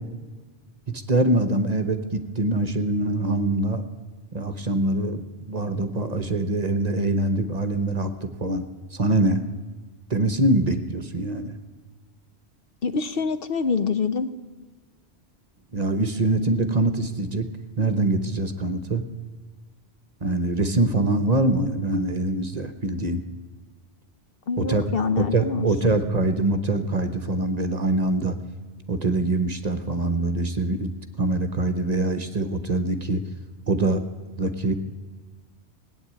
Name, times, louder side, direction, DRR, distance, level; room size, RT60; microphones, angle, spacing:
voice 1, 0.9-3.8 4.3-8.7 8.9-9.4 10.1-11.6 15.7-17.5 17.8-19.0 20.2-23.2 24.6-24.8 25.2-28.4 28.9-30.9 31.2-33.2 33.7-34.0 34.4-34.7, right 2 dB, 40° right, 9 dB, 1.0 m, -24 dB
voice 2, 12.8-14.3 24.5-25.7, left 5 dB, 60° left, 12 dB, 0.9 m, -25 dB
17.5 x 9.2 x 8.6 m, 1.3 s
omnidirectional pair, 1.1 m